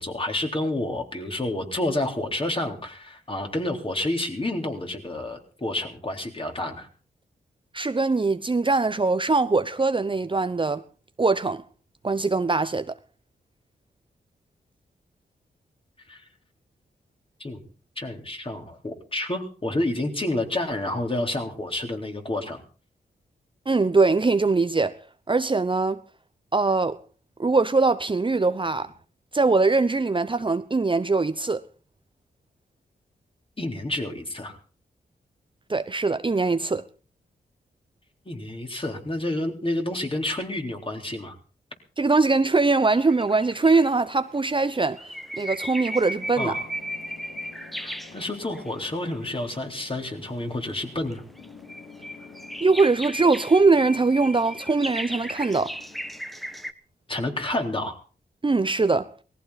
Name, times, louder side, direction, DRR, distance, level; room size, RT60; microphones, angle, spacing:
voice 1, 0.0-6.9 16.1-16.2 17.4-17.6 18.0-22.6 33.6-34.6 38.3-41.3 46.4-46.7 47.8-51.2 57.1-58.0, left 1 dB, 30° left, 3.8 m, -29 dB
voice 2, 7.7-10.8 11.2-11.6 12.0-13.0 23.7-25.0 25.3-26.0 26.5-27.0 27.4-28.9 29.3-31.6 35.7-36.8 42.0-45.0 45.4-46.5 52.6-55.8 58.4-59.1, right 3 dB, 30° right, 0.8 m, -22 dB
sound 1, 42.9-43.9 44.5-48.7 49.1-49.7 50.5-56.7, equal, ahead, 1.2 m, -36 dB
sound 2, 46.2-56.2, left 4 dB, 75° left, 3.7 m, -49 dB
18.5 x 15.0 x 4.1 m
cardioid pair, 50°, 18 cm